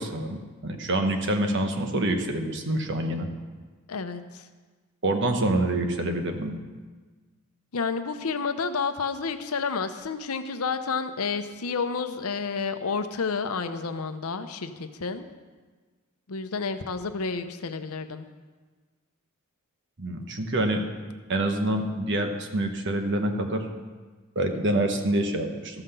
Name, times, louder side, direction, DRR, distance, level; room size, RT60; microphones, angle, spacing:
voice 1, 0.0-3.3 5.0-6.6 20.0-20.8 21.3-23.7 24.3-25.8, right 1 dB, 55° right, 5 dB, 1.1 m, -26 dB
voice 2, 3.9-4.4 7.7-15.3 16.3-18.3, left 5 dB, 75° left, 9 dB, 0.7 m, -30 dB
13.5 x 5.8 x 6.7 m, 1.4 s
head